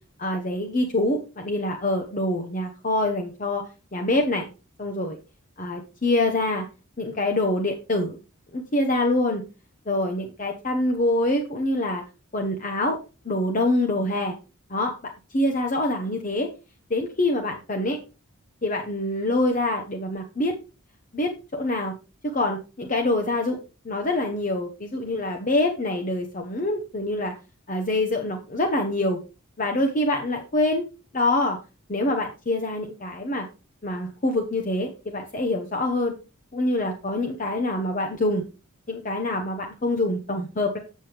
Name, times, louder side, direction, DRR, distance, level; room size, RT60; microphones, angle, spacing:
voice 1, 0.2-3.6 3.9-4.5 4.8-5.2 5.6-6.6 7.0-8.2 8.5-9.4 9.9-12.0 12.3-13.0 13.2-14.4 14.7-16.5 16.9-18.0 18.6-20.5 21.1-21.9 22.3-23.6 23.8-27.3 27.7-29.2 29.6-30.8 31.1-31.6 31.9-33.5 33.8-36.1 36.5-38.4 38.9-40.8, left 1 dB, 35° left, 3 dB, 0.8 m, -25 dB
7.4 x 7.4 x 3.3 m, 0.30 s
head